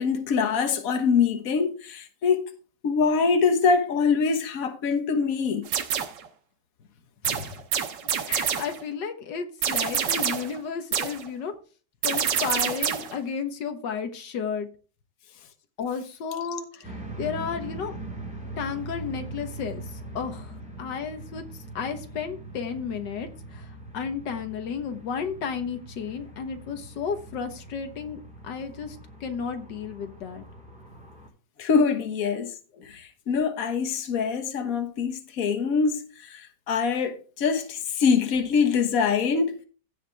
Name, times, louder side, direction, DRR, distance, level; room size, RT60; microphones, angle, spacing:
voice 1, 0.0-2.5 2.8-5.7 31.6-32.5 32.8-39.6, left 5 dB, 55° left, 1.6 m, -24 dB
sound 1, 5.7-6.3 7.2-8.8 9.6-10.6 10.9-11.3 12.0-13.2, right 8 dB, 85° right, 1.8 m, -27 dB
voice 2, 7.2-7.6 8.3-11.5 12.0-14.7 15.8-18.0 18.6-30.4, left 6 dB, 85° left, 1.8 m, -33 dB
sound 2, 16.8-31.3, right 2 dB, 5° right, 3.8 m, -41 dB
16.0 x 5.8 x 3.4 m
omnidirectional pair, 1.9 m